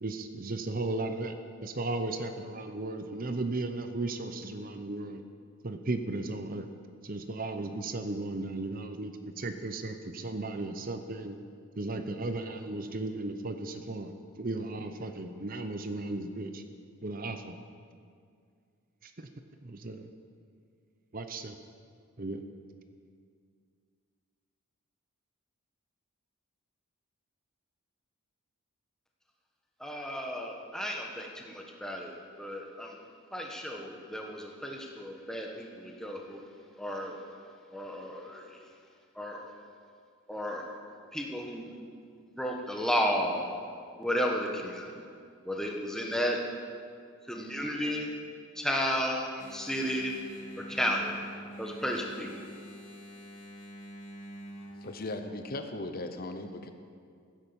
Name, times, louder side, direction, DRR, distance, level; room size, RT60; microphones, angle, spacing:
voice 1, 0.0-1.4 1.6-5.2 5.6-6.7 7.0-11.4 11.8-14.1 14.4-16.6 17.0-17.6 19.7-20.0 21.1-21.5 22.2-22.4, right 2 dB, 40° right, 8 dB, 0.7 m, -35 dB
voice 2, 29.8-33.0 33.3-36.4 36.8-37.2 37.7-38.4 39.2-39.5 40.3-40.6 41.1-41.7 42.3-43.5 44.0-45.0 45.4-46.4 47.3-48.1 48.6-50.1 50.6-51.2 51.6-52.4, equal, ahead, 0 dB, 1.4 m, -33 dB
Engine, 49.4-54.9, equal, 70° left, 2.0 m, -46 dB
voice 3, 54.8-56.7, left 2 dB, 40° left, 7 dB, 0.8 m, -37 dB
15.5 x 10.5 x 7.0 m, 2.2 s
head